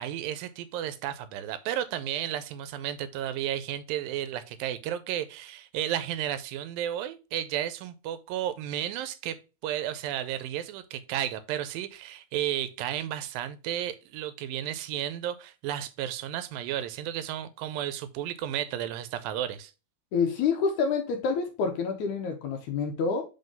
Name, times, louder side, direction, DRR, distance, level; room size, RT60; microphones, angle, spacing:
voice 1, 0.0-19.7, right 11 dB, 80° right, 2.3 m, -33 dB
voice 2, 20.1-23.2, left 5 dB, 70° left, 2.0 m, -27 dB
5.4 x 3.8 x 5.3 m
omnidirectional pair, 4.1 m